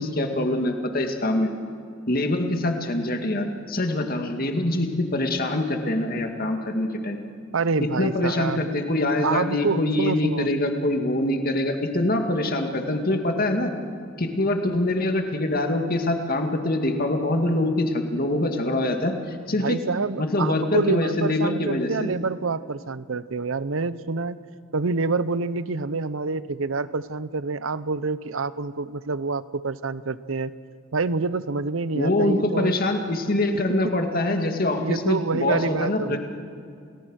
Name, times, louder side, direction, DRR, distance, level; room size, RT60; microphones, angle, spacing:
voice 1, 0.0-1.5 2.1-7.2 8.0-13.7 14.2-19.8 20.2-21.9 31.9-36.2, left 1 dB, 45° left, 4 dB, 2.1 m, -24 dB
voice 2, 7.5-8.7 9.2-10.5 19.6-24.4 24.7-30.5 30.9-32.7 34.8-36.2, right 4 dB, 80° right, 16 dB, 0.8 m, -27 dB
28.5 x 18.5 x 6.4 m, 2.3 s
head